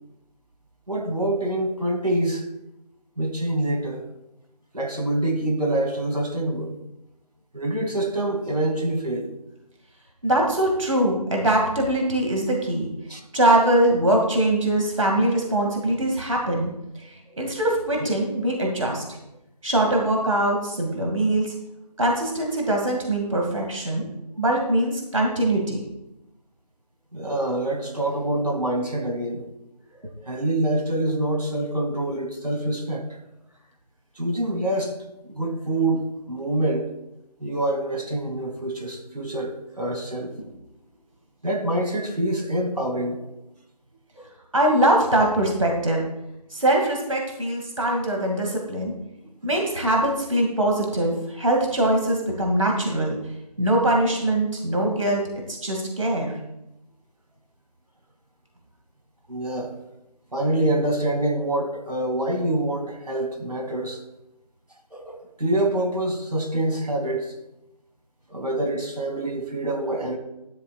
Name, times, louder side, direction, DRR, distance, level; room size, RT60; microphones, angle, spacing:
voice 1, 0.9-2.5 3.2-4.0 4.7-6.8 7.5-9.3 13.1-13.2 18.0-18.1 27.1-29.5 30.0-33.0 34.2-35.0 35.2-36.9 37.4-40.3 41.4-43.3 44.1-44.3 59.3-59.7 60.3-64.0 64.9-67.3 68.3-70.2, right 1 dB, 70° right, 2 dB, 2.4 m, -26 dB
voice 2, 10.2-12.9 13.3-16.7 17.4-19.0 19.6-21.5 22.0-24.1 24.4-25.8 44.5-46.0 46.5-48.9 49.4-53.2 53.6-55.2 55.6-56.3, right 1 dB, 50° right, 1 dB, 2.1 m, -22 dB
13.0 x 12.0 x 2.4 m, 0.89 s
figure-of-eight pair, 165°, 21 cm